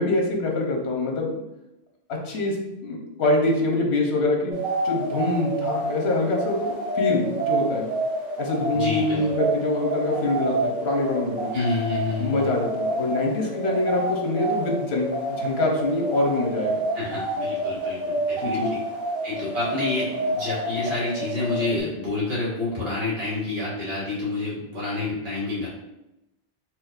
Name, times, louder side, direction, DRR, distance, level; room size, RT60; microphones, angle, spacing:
voice 1, 0.0-1.3 2.1-4.6 4.8-7.9 8.4-11.5 12.2-16.8 18.4-18.7, left 2 dB, 85° left, 1 dB, 1.0 m, -25 dB
sound 1, 4.5-21.8, right 1 dB, 40° right, 1.4 m, -28 dB
voice 2, 8.7-9.3 11.5-12.5 16.9-18.8 19.2-25.7, left 2 dB, 70° right, -7 dB, 1.7 m, -28 dB
4.7 x 2.9 x 2.4 m, 0.91 s
omnidirectional pair, 1.1 m